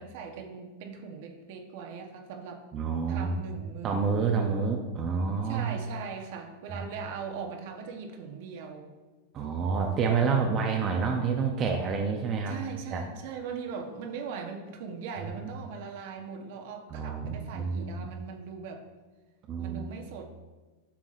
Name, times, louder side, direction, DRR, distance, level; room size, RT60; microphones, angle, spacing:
voice 1, 0.0-2.6 3.1-4.3 5.4-8.9 12.5-18.8 19.6-20.2, right 6 dB, 60° right, 3 dB, 0.9 m, -40 dB
voice 2, 2.7-3.4 3.8-5.8 9.3-12.6 12.9-13.0 16.9-18.2 19.5-19.9, right 5 dB, 30° right, 1 dB, 0.6 m, -28 dB
7.9 x 5.9 x 2.5 m, 1.3 s
supercardioid pair, 140°, 0 cm